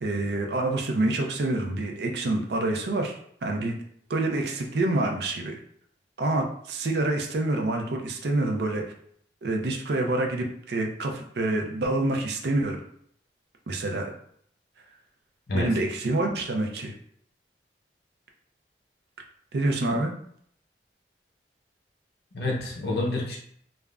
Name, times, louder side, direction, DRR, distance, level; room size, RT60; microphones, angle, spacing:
voice 1, 0.0-3.1 3.4-3.8 4.1-5.5 6.2-8.8 9.4-12.8 13.7-14.1 15.5-16.9 19.5-20.1, right 2 dB, 70° right, 2 dB, 0.4 m, -27 dB
voice 2, 22.3-23.4, left 2 dB, 65° left, -1 dB, 0.7 m, -28 dB
3.4 x 2.0 x 2.3 m, 0.65 s
head